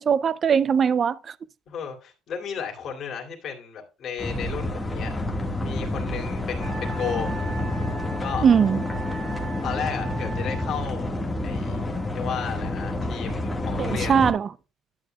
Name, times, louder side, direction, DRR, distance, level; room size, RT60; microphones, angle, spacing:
voice 1, 0.0-1.3 8.4-8.8 13.8-14.5, right 7 dB, 40° right, 0.4 m, -20 dB
voice 2, 1.7-7.4 8.2-8.4 9.6-11.1 11.4-14.2, left 7 dB, 50° left, 2.5 m, -34 dB
sound 1, 4.2-14.3, left 1 dB, 5° left, 1.6 m, -29 dB
Wind instrument woodwind instrument, 6.6-10.9, right 3 dB, 65° right, 2.2 m, -39 dB
12.0 x 9.4 x 2.3 m
cardioid pair, 115°, 0 cm